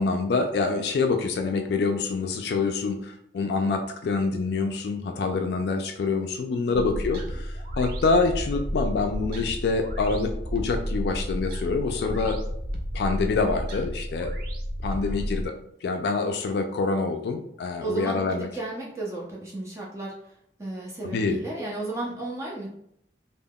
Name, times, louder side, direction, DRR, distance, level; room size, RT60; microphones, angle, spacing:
voice 1, 0.0-12.4 12.9-14.3 14.8-15.6 15.8-18.5 21.0-21.4, left 4 dB, 70° left, 5 dB, 0.3 m, -26 dB
voice 2, 6.7-7.0 15.0-15.2 17.8-20.3 20.6-22.7, right 2 dB, 15° right, -5 dB, 0.6 m, -34 dB
sound 1, 6.7-15.5, equal, 55° right, 0.4 m, -32 dB
3.5 x 2.0 x 2.3 m, 0.73 s
head